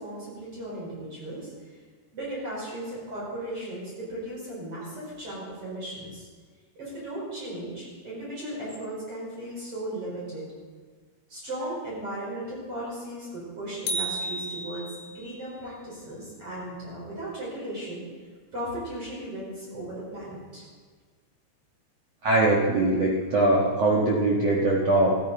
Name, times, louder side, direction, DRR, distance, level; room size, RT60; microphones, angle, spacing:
voice 1, 0.0-1.5 2.1-6.3 6.8-10.5 11.3-14.9 15.1-18.0 18.5-20.6, right 1 dB, 30° right, -6 dB, 5.5 m, -36 dB
sound 1, 13.9-15.3, right 2 dB, 60° left, 3.0 m, -32 dB
voice 2, 22.2-25.2, right 2 dB, 75° right, -4 dB, 1.5 m, -22 dB
15.0 x 13.5 x 4.2 m, 1.5 s
omnidirectional pair, 5.2 m